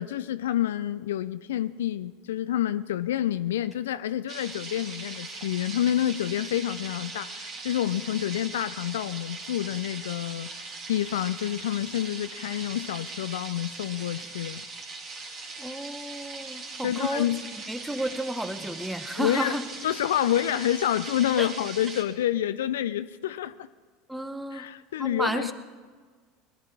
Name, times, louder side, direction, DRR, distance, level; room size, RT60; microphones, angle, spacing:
voice 1, 0.0-14.6 16.8-17.4 19.2-19.6 19.8-23.7 24.5-25.5, left 11 dB, 70° left, 14 dB, 0.4 m, -28 dB
sound 1, 4.3-22.0, right 3 dB, 45° right, 2.7 m, -40 dB
voice 2, 15.6-17.3 17.7-19.7 21.4-21.5 24.1-24.7 25.0-25.5, right 1 dB, 5° right, 10 dB, 1.1 m, -32 dB
21.5 x 12.5 x 4.2 m, 1.5 s
figure-of-eight pair, 75°, 0 cm